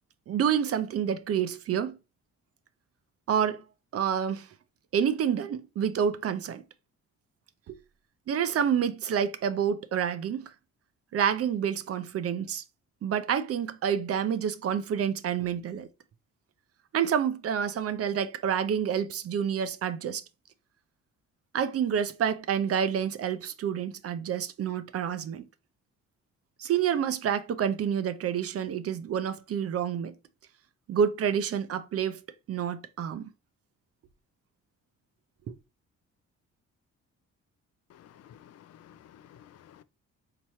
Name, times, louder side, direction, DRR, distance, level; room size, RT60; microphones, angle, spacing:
voice 1, 0.3-2.0 3.3-3.6 3.9-4.5 4.9-6.6 7.7-7.8 8.3-10.5 11.1-12.6 13.0-15.9 16.9-20.2 21.5-25.5 26.6-30.1 30.9-32.2 32.5-33.3 35.5-35.6, right 8 dB, 50° right, 0.5 m, -28 dB
voice 2, 37.9-39.8, left 10 dB, 55° left, 0.5 m, -54 dB
4.4 x 2.9 x 3.0 m
cardioid pair, 90°, 30 cm